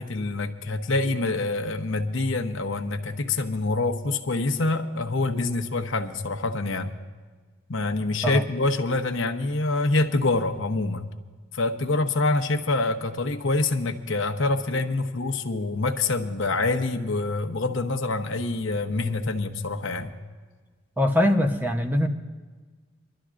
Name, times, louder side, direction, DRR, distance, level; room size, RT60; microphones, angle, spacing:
voice 1, 0.0-6.9 7.7-11.1 11.5-20.1, left 2 dB, 85° left, 6 dB, 0.9 m, -26 dB
voice 2, 21.0-22.1, left 1 dB, 10° right, 5 dB, 0.7 m, -22 dB
25.5 x 12.0 x 2.5 m, 1.5 s
head